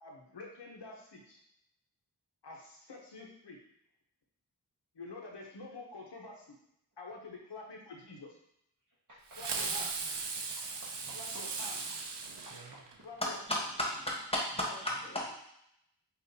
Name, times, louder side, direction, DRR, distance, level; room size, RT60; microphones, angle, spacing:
voice 1, 0.0-1.4 2.4-3.6 4.9-6.6 7.0-8.4 9.4-9.9 11.1-11.8 13.0-13.6 14.6-14.7, left 3 dB, 90° left, -1 dB, 0.9 m, -47 dB
voice 2, 9.1-9.9 10.6-11.7 12.4-13.1, right 1 dB, 50° right, -7 dB, 0.9 m, -55 dB
Fireworks, 9.3-13.2, right 4 dB, 85° right, 0.6 m, -38 dB
voice 3, 13.2-15.4, left 1 dB, 15° left, -3 dB, 1.2 m, -34 dB
5.5 x 2.5 x 2.8 m, 0.76 s
wide cardioid pair, 50°, 41 cm